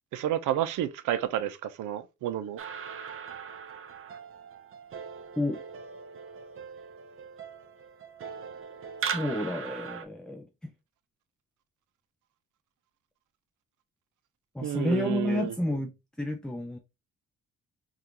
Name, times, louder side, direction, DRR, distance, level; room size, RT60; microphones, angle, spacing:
voice 1, 0.1-2.6 14.6-15.5, right 12 dB, 85° right, 0.6 m, -30 dB
sound 1, 2.6-10.0, right 6 dB, 45° right, 0.6 m, -40 dB
voice 2, 9.1-10.7 14.5-15.9 16.2-16.8, left 1 dB, 5° left, 0.3 m, -30 dB
5.0 x 2.4 x 2.8 m
cardioid pair, 145°, 30 cm